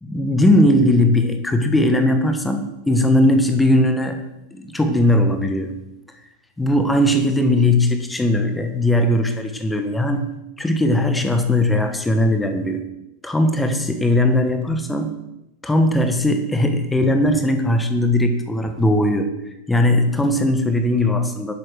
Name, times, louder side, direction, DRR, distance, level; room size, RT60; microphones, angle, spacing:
voice 1, 0.0-4.2 4.5-5.7 6.6-10.3 10.6-12.8 13.2-15.1 15.6-19.3 19.7-21.5, left 1 dB, 5° left, 6 dB, 1.3 m, -18 dB
11.5 x 7.9 x 6.4 m, 0.91 s
figure-of-eight pair, 90°, 0 cm